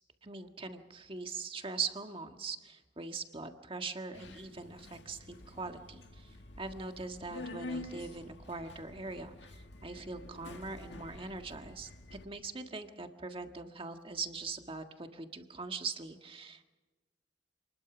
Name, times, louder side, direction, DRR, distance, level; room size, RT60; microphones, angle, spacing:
voice 1, 0.2-16.6, right 4 dB, 30° right, 6 dB, 1.7 m, -42 dB
Subway metro underground, 4.1-12.2, left 2 dB, 85° left, 1.9 m, -48 dB
27.5 x 20.5 x 6.1 m, 1.2 s
head